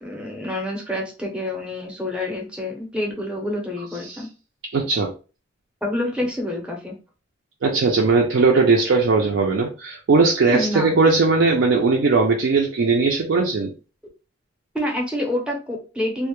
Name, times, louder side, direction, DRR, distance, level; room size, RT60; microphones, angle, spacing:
voice 1, 0.0-4.3 5.8-7.0 10.5-10.9 14.7-16.3, left 1 dB, 5° right, 0 dB, 0.5 m, -27 dB
voice 2, 4.7-5.1 7.6-13.7, right 4 dB, 65° right, 0 dB, 0.4 m, -18 dB
2.1 x 2.0 x 2.9 m, 0.34 s
head